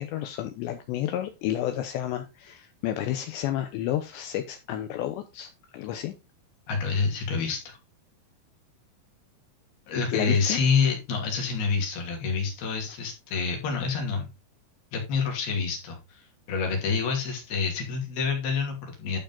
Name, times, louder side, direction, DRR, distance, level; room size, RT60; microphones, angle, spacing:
voice 1, 0.0-6.1 10.1-10.6, left 12 dB, 75° left, 7 dB, 2.9 m, -31 dB
voice 2, 6.7-7.8 9.9-14.3 14.9-19.2, left 5 dB, 60° left, 2 dB, 4.3 m, -27 dB
11.5 x 5.1 x 3.9 m, 0.26 s
omnidirectional pair, 5.4 m